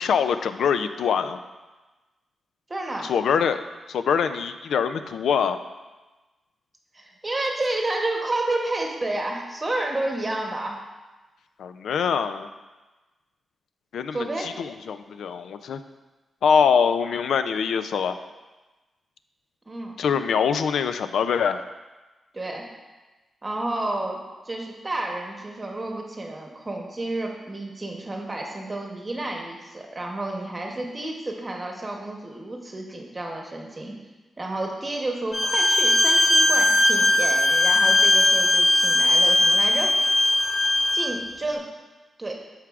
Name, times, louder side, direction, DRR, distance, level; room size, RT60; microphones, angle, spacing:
voice 1, 0.0-1.4 3.0-3.6 3.9-5.6 11.6-12.5 13.9-15.8 16.4-18.2 20.0-21.7, left 7 dB, 85° left, 10 dB, 0.4 m, -24 dB
voice 2, 2.7-3.1 6.9-10.8 14.1-14.5 19.7-19.9 22.3-22.6 23.4-24.2 24.4-33.9 34.4-39.9 40.9-41.6 42.2-42.3, right 2 dB, 20° right, 1 dB, 0.9 m, -30 dB
Bowed string instrument, 35.3-41.1, left 1 dB, 40° left, 0.9 m, -19 dB
13.5 x 4.7 x 2.4 m, 1.2 s
wide cardioid pair, 155°, 0 cm